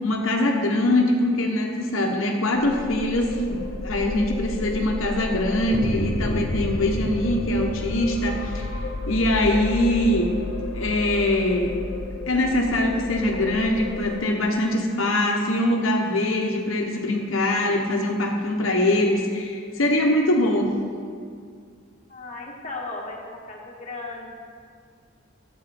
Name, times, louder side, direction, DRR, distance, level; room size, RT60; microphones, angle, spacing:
voice 1, 0.0-8.7 9.1-10.3 10.7-11.8 12.3-20.7, left 1 dB, 90° left, 0 dB, 1.1 m, -23 dB
sound 1, 2.6-14.2, left 2 dB, 65° left, 0.8 m, -31 dB
voice 2, 22.1-24.3, left 3 dB, 35° left, -2 dB, 1.6 m, -36 dB
12.0 x 8.3 x 4.3 m, 2.1 s
head